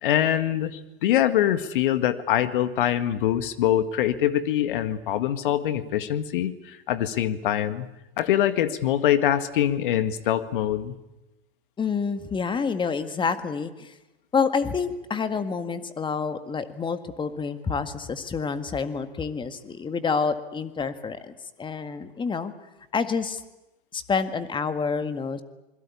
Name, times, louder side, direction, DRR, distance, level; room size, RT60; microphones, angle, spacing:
voice 1, 0.0-7.9 8.2-11.0, left 11 dB, 60° left, 11 dB, 1.9 m, -24 dB
voice 2, 11.8-13.9 14.3-21.3 21.6-22.5 22.9-23.4 23.9-25.4, left 5 dB, 15° left, 10 dB, 1.9 m, -28 dB
26.5 x 22.0 x 8.6 m, 0.94 s
hypercardioid pair, 100°, 29 cm